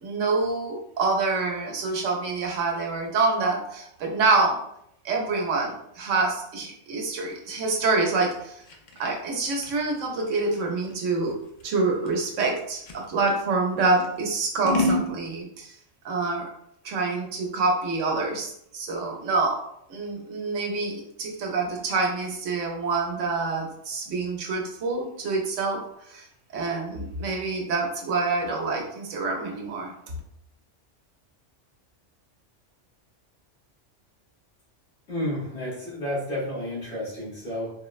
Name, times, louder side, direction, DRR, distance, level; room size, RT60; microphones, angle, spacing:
voice 1, 0.0-4.6 5.0-8.6 9.0-11.3 11.6-15.7 16.0-16.5 16.8-19.6 19.9-25.8 26.1-26.3 26.5-29.9, right 3 dB, 90° right, 1 dB, 1.0 m, -26 dB
Scissors, 7.3-13.4 14.0-15.1, left 1 dB, 60° left, 0.5 m, -31 dB
voice 2, 35.1-37.7, left 1 dB, 75° left, -11 dB, 1.8 m, -31 dB
3.9 x 2.0 x 2.3 m, 0.73 s
omnidirectional pair, 1.3 m